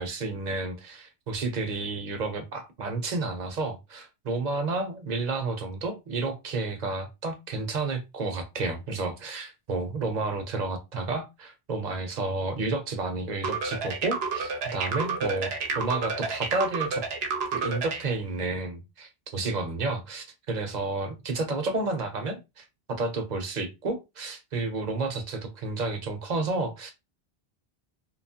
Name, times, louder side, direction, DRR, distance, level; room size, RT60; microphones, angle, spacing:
voice 1, 0.0-17.0 17.5-26.9, right 3 dB, 50° right, 0.8 m, -31 dB
sound 1, 13.4-18.0, right 4 dB, 75° right, 0.9 m, -30 dB
2.9 x 2.3 x 2.8 m
omnidirectional pair, 1.1 m